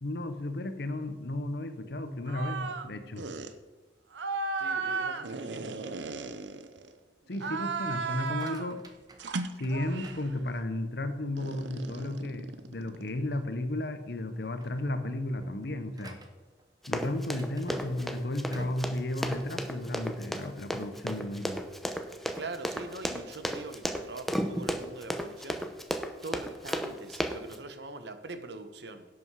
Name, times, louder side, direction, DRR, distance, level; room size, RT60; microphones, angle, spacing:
voice 1, 0.0-3.2 7.3-8.8 9.6-16.2 16.9-21.6, left 1 dB, 60° left, 9 dB, 1.0 m, -34 dB
sound 1, 2.3-2.9 3.2-3.5 4.1-6.9 7.3-8.7 9.2-10.3 11.4-13.2, right 4 dB, 85° right, 0.8 m, -35 dB
voice 2, 4.6-6.0 22.3-25.6 26.2-29.1, right 2 dB, 65° right, 9 dB, 1.1 m, -43 dB
sound 2, 8.2-10.9 11.4-11.9 12.3-12.4 12.8-13.0 13.7-13.9 14.3-20.2, right 1 dB, 20° right, 1.1 m, -50 dB
Run, 16.8-27.6, equal, ahead, 0.8 m, -33 dB
11.0 x 8.0 x 4.8 m, 1.2 s
head